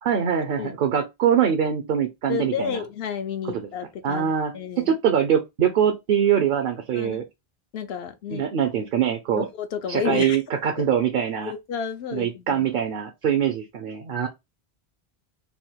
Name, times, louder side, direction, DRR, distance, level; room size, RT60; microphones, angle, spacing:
voice 1, 0.0-2.8 3.5-3.7 4.0-7.2 8.3-9.5 9.9-11.5 12.1-14.3, right 8 dB, 60° right, 0.8 m, -23 dB
voice 2, 2.3-5.0 6.9-7.2 7.7-8.5 9.4-10.4 10.8-10.9 11.5-12.7, left 7 dB, 75° left, 0.9 m, -31 dB
3.5 x 2.3 x 4.3 m
omnidirectional pair, 1.1 m